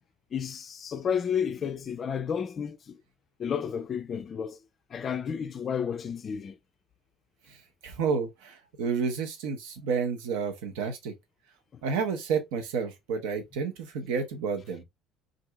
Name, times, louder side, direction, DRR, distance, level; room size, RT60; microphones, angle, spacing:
voice 1, 0.3-3.0 3.4-4.6 4.9-6.6 11.7-11.8, left 7 dB, 40° left, 0.3 m, -31 dB
voice 2, 7.8-11.1 11.8-14.8, right 5 dB, 65° right, 0.7 m, -30 dB
2.7 x 2.5 x 3.2 m
figure-of-eight pair, 55°, 0 cm